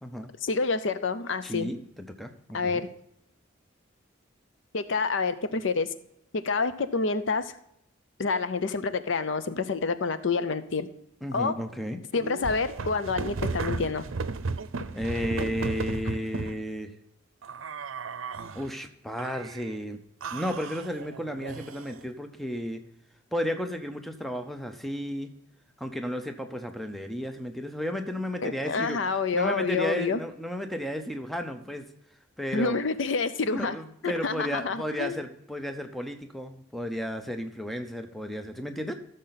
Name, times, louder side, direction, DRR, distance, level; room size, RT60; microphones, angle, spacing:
voice 1, 0.4-1.7 2.5-2.9 4.7-5.9 6.4-7.5 8.2-10.9 11.3-11.5 12.1-14.0 28.4-30.2 32.5-33.8 34.0-35.2, left 4 dB, 70° left, 12 dB, 0.6 m, -28 dB
voice 2, 1.4-2.8 11.2-12.0 14.9-16.9 18.5-20.0 20.3-22.8 23.3-25.3 25.8-29.0 29.3-31.9 32.4-32.8 33.5-38.9, equal, ahead, 6 dB, 0.6 m, -33 dB
sound 1, 12.1-16.6 17.4-18.7 19.2-19.8 20.2-22.0, right 4 dB, 85° right, 0.6 m, -35 dB
14.5 x 6.6 x 4.1 m, 0.77 s
head